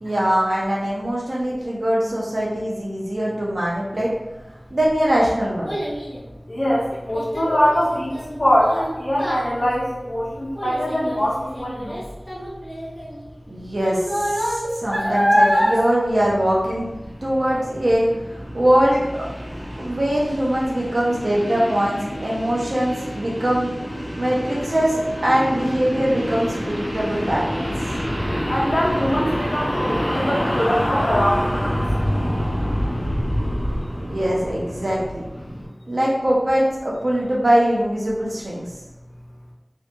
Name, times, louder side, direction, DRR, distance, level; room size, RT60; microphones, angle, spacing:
voice 1, 0.0-4.1 4.7-5.8 13.5-16.9 17.2-19.1 19.8-23.7 24.2-27.7 34.0-35.2 35.9-38.7, right 1 dB, 70° right, -5 dB, 0.5 m, -22 dB
Child speech kid speaking, 4.5-17.1 17.5-17.9 18.4-18.5, equal, 5° right, 1.0 m, -26 dB
voice 2, 6.5-12.0 28.5-31.7, equal, 60° left, -7 dB, 0.9 m, -22 dB
sound 1, 16.1-35.7, equal, 15° left, 1.2 m, -27 dB
2.6 x 2.6 x 2.2 m, 1.0 s
wide cardioid pair, 45°, 0 cm